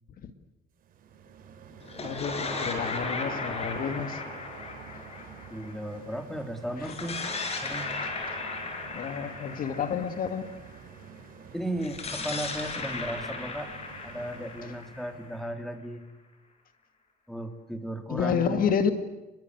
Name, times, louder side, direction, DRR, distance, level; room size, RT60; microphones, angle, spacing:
sound 1, 0.8-15.3, right 7 dB, 55° right, 5.3 m, -49 dB
sound 2, 1.8-6.2 6.8-10.8 11.8-15.6, left 3 dB, 40° left, 6.0 m, -36 dB
voice 1, 2.0-4.2 6.8-6.9 8.9-10.5 18.1-18.9, left 7 dB, 55° left, 2.2 m, -29 dB
voice 2, 5.5-7.2 7.6-7.9 11.5-13.7 14.0-16.0 17.3-18.6, right 1 dB, ahead, 3.0 m, -35 dB
29.5 x 22.0 x 8.1 m
cardioid pair, 110°, 17 cm